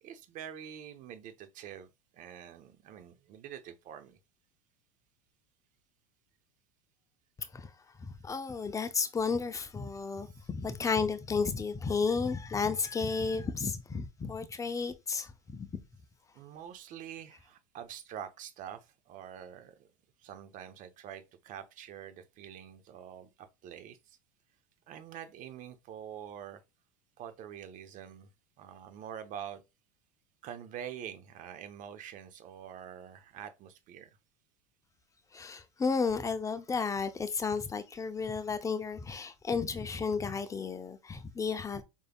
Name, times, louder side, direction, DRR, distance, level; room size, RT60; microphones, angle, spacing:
voice 1, 0.0-1.9 2.1-4.2 16.3-19.9 20.2-23.3 23.6-24.2 24.9-26.6 27.2-28.3 28.6-29.6 30.4-34.2, right 9 dB, 50° right, 0.9 m, -46 dB
voice 2, 8.0-15.8 35.3-41.8, left 5 dB, 20° left, 0.6 m, -33 dB
5.4 x 3.4 x 2.3 m
hypercardioid pair, 100°, 17 cm